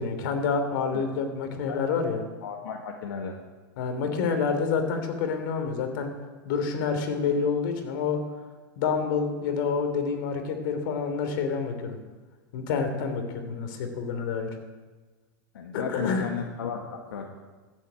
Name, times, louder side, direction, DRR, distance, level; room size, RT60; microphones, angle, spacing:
voice 1, 0.0-2.2 3.8-6.1 6.4-8.2 8.8-12.0 12.5-14.5 15.7-16.3, left 5 dB, 65° left, 6 dB, 3.0 m, -28 dB
voice 2, 2.4-3.4 15.5-17.3, left 7 dB, 85° left, 1 dB, 1.7 m, -34 dB
15.5 x 8.3 x 8.2 m, 1.3 s
hypercardioid pair, 125°, 12 cm